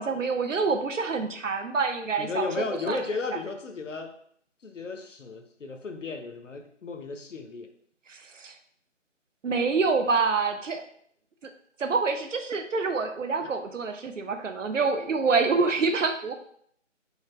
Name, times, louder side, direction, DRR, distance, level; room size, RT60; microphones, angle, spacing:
voice 1, 0.0-2.5 2.9-3.0 8.1-8.6 9.4-10.8 11.8-16.4, right 4 dB, 80° right, 6 dB, 0.7 m, -26 dB
voice 2, 2.2-4.1 4.6-7.7, left 4 dB, 75° left, 6 dB, 0.8 m, -34 dB
4.9 x 2.7 x 3.1 m, 0.65 s
figure-of-eight pair, 165°, 38 cm